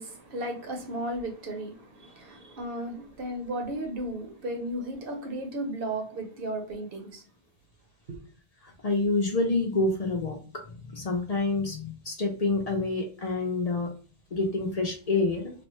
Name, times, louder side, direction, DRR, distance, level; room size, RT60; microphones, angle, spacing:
voice 1, 0.0-7.2 8.1-8.2, right 1 dB, 55° right, 1.0 m, -35 dB
voice 2, 8.6-10.4 10.7-13.9 14.3-15.5, left 3 dB, 50° left, 0.5 m, -27 dB
3.3 x 2.1 x 3.0 m
omnidirectional pair, 1.2 m